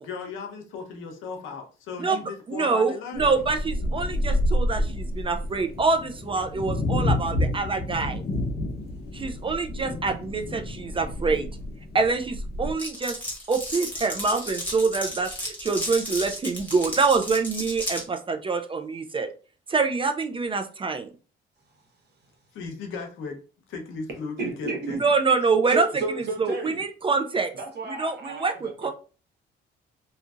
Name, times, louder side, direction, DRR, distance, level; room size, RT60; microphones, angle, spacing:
voice 1, 0.0-3.5 22.5-23.4 23.7-24.3 24.6-25.0, left 5 dB, 85° left, 3 dB, 0.7 m, -36 dB
voice 2, 2.5-8.2 9.1-11.5 11.9-13.2 13.5-19.3 19.7-21.1 25.0-25.9 26.1-27.5 27.9-28.9, right 4 dB, 25° right, 6 dB, 0.3 m, -25 dB
sound 1, 3.1-12.7, left 1 dB, 50° left, 0.8 m, -29 dB
Glass, 12.8-18.0, equal, 10° left, 1.3 m, -33 dB
voice 3, 24.4-25.1 25.7-26.8 27.5-28.9, right 3 dB, 55° right, 1 dB, 1.0 m, -32 dB
2.7 x 2.5 x 2.3 m, 0.37 s
cardioid pair, 90°, 20 cm